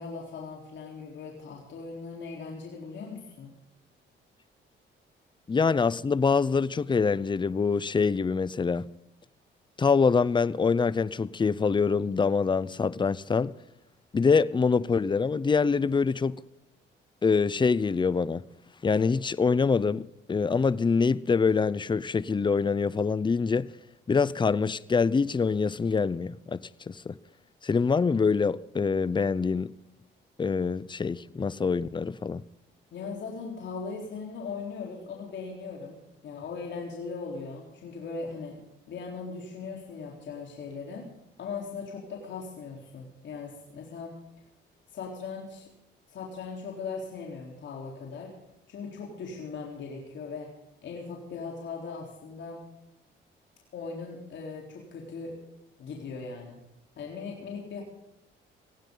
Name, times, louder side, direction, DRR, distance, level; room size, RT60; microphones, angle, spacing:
voice 1, 0.0-3.5 32.9-38.6 38.9-41.1 41.4-44.1 44.9-45.7 46.1-48.3 48.7-50.5 50.8-52.6 53.7-55.3 55.8-56.6 57.0-57.8, left 4 dB, 65° left, 4.0 m, -39 dB
voice 2, 5.5-8.9 9.8-13.5 14.1-16.4 17.2-18.4 18.8-23.7 24.1-27.1 27.6-29.7 30.4-32.4, left 5 dB, 25° left, 0.7 m, -25 dB
18.5 x 17.0 x 4.0 m
cardioid pair, 90°, 20 cm